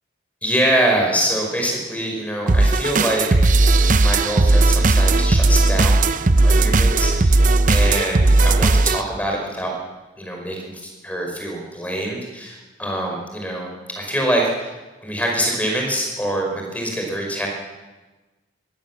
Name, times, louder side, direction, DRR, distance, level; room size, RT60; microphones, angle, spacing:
voice 1, 0.4-3.2 4.0-9.7 10.2-13.7 14.0-14.7 15.0-17.5, right 1 dB, 10° left, 1 dB, 5.3 m, -24 dB
sound 1, 2.5-9.0, right 2 dB, 45° right, 0.7 m, -16 dB
22.5 x 16.5 x 7.4 m, 1.2 s
head